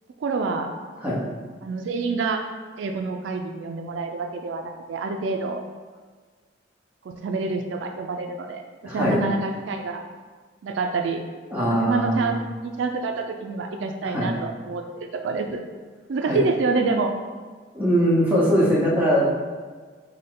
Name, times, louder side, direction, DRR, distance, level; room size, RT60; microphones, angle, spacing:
voice 1, 0.2-0.7 1.6-2.5 2.8-5.6 7.0-10.1 10.6-11.2 11.7-15.6 16.1-17.1, right 4 dB, 80° right, 4 dB, 0.4 m, -27 dB
voice 2, 8.8-9.2 11.5-12.3 14.0-14.3 16.3-16.4 17.7-19.3, equal, 10° right, -6 dB, 1.0 m, -21 dB
5.4 x 2.2 x 3.7 m, 1.5 s
head